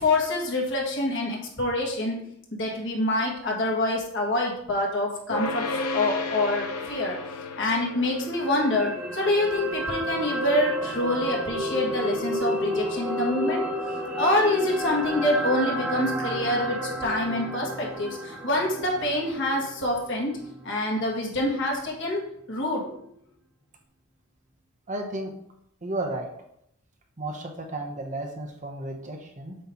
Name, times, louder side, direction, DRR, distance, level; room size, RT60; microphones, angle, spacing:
voice 1, 0.0-2.2 2.5-5.6 5.9-7.2 7.6-13.7 14.2-20.3 20.6-23.1, left 1 dB, 55° left, -2 dB, 1.8 m, -26 dB
sound 1, 5.3-16.6, left 3 dB, 85° left, 0.8 m, -37 dB
sound 2, 8.3-20.6 21.0-21.1, right 1 dB, 5° right, 1.5 m, -31 dB
voice 2, 24.9-25.3 25.8-26.3 27.2-29.6, right 2 dB, 35° right, 3 dB, 0.8 m, -33 dB
7.7 x 3.0 x 5.6 m, 0.72 s
head